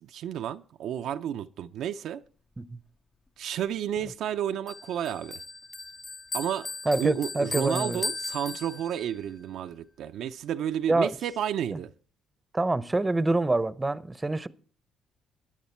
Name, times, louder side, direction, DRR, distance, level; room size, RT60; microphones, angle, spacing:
voice 1, 0.0-2.2 3.4-5.4 6.3-6.7 6.9-11.9, right 10 dB, 75° right, 0.5 m, -31 dB
Bell, 4.7-9.2, left 3 dB, 40° left, 0.8 m, -37 dB
voice 2, 6.9-8.0 10.9-11.1 11.7-11.8 12.5-14.5, right 2 dB, 20° right, 0.7 m, -26 dB
14.5 x 10.0 x 4.4 m
supercardioid pair, 70°, 0 cm